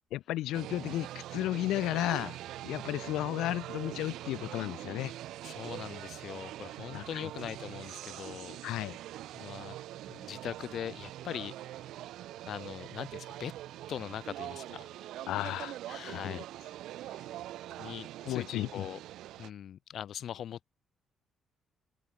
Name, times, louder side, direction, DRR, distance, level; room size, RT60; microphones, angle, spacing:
voice 1, 0.1-2.4 2.6-5.1 6.9-7.0 8.6-9.0 15.3-15.8 16.1-16.4 18.2-18.8, left 15 dB, 90° left, 1.6 m, -33 dB
sound 1, 0.5-19.5, right 14 dB, 85° right, 2.0 m, -43 dB
voice 2, 5.1-8.6 9.3-9.7 10.1-11.9 12.5-13.5 13.9-15.1 15.9-16.4 17.0-17.4 17.8-19.0 19.4-20.7, left 10 dB, 65° left, 1.3 m, -42 dB
cardioid pair, 90°, 0 cm